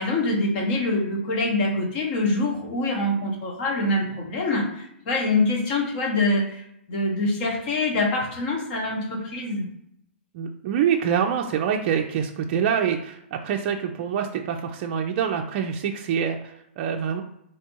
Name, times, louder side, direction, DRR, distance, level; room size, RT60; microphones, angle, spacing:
voice 1, 0.0-9.7, left 2 dB, 50° left, 1 dB, 1.0 m, -25 dB
voice 2, 10.3-17.2, right 8 dB, 45° right, 3 dB, 0.3 m, -25 dB
3.4 x 2.8 x 2.9 m, 0.77 s
hypercardioid pair, 125°, 7 cm